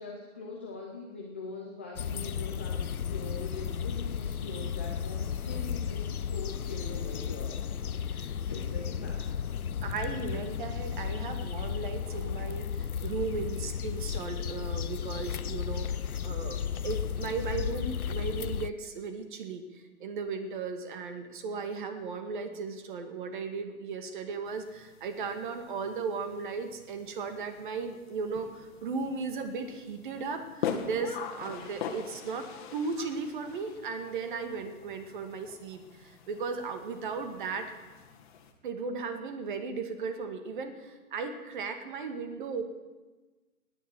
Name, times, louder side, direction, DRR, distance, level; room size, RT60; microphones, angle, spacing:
voice 1, 0.0-9.3 31.6-31.7, left 3 dB, 10° left, -3 dB, 0.5 m, -43 dB
sound 1, 2.0-18.7, left 8 dB, 85° left, 0.7 m, -34 dB
voice 2, 9.8-15.9 16.2-37.8 38.6-42.6, right 4 dB, 35° right, 8 dB, 2.0 m, -36 dB
sound 2, 24.5-38.5, left 7 dB, 35° left, 1.8 m, -43 dB
17.0 x 10.0 x 7.7 m, 1.2 s
figure-of-eight pair, 140°, 43 cm